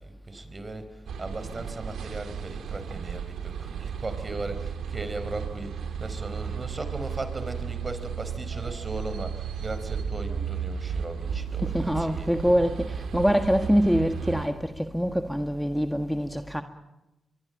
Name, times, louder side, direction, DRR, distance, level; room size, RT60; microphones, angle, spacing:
voice 1, 0.0-12.4, right 2 dB, 40° right, 4.4 m, -37 dB
sound 1, 1.1-14.5, right 7 dB, 85° right, 2.9 m, -34 dB
voice 2, 11.6-16.6, equal, ahead, 1.6 m, -25 dB
23.5 x 22.5 x 9.0 m
cardioid pair, 55°, 0 cm